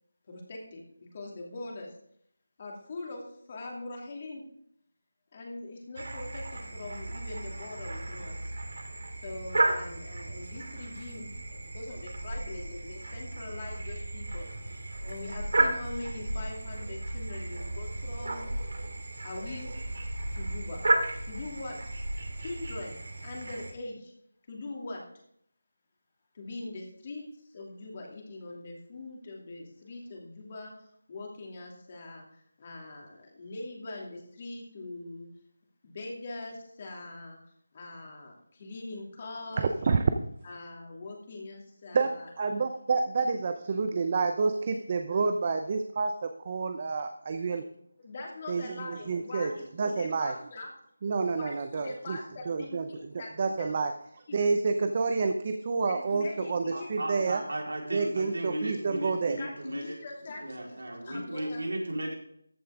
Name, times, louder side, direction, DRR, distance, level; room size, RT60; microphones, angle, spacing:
voice 1, 0.3-1.9 2.6-4.4 5.3-8.4 9.1-14.5 15.0-18.5 19.2-19.7 20.3-20.8 21.2-21.8 22.4-24.1 24.5-25.0 26.3-27.2 27.5-32.3 32.6-35.3 35.8-37.4 37.7-39.7 40.4-42.6 45.1-45.2 48.0-50.7 51.3-53.3 53.6-53.7 54.3-54.4 55.8-56.9 59.4-60.8 61.0-61.6, left 2 dB, 30° left, -1 dB, 2.6 m, -42 dB
sound 1, 6.0-23.7, right 2 dB, 65° right, 2.4 m, -34 dB
voice 2, 42.4-47.7 48.5-49.5 49.8-50.3 51.0-52.2 52.5-52.9 53.4-53.9 54.3-57.4 57.9-59.4, right 4 dB, 30° right, 7 dB, 0.7 m, -29 dB
voice 3, 56.7-60.0 60.4-62.1, right 1 dB, 85° right, -1 dB, 4.1 m, -35 dB
14.0 x 8.6 x 3.6 m, 0.70 s
figure-of-eight pair, 170°, 0 cm